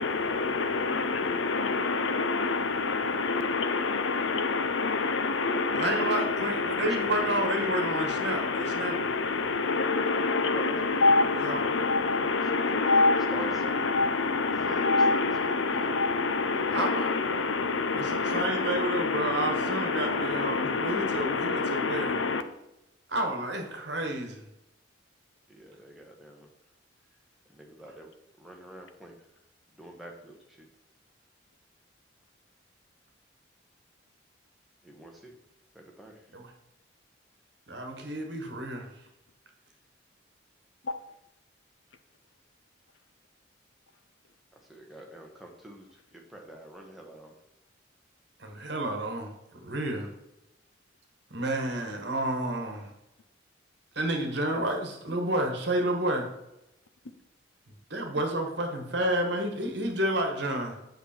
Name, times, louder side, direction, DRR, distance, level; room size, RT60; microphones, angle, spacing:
voice 1, 0.0-22.4 40.8-40.9, left 3 dB, 75° left, 0.7 m, -27 dB
voice 2, 5.7-9.1 11.4-11.6 16.7-17.1 17.9-22.2 23.1-24.5 36.3-36.5 37.7-38.9 48.4-49.3 49.6-50.1 51.3-52.9 53.9-56.3 57.9-60.8, right 1 dB, 60° right, 1.4 m, -30 dB
voice 3, 10.0-10.8 12.5-13.0 13.3-13.9 14.6-15.9 16.5-17.5 25.5-26.5 27.5-28.1 28.4-29.3 29.8-30.7 34.8-35.3 35.7-36.2 44.7-47.4, right 1 dB, ahead, 1.2 m, -45 dB
8.2 x 5.9 x 4.4 m
head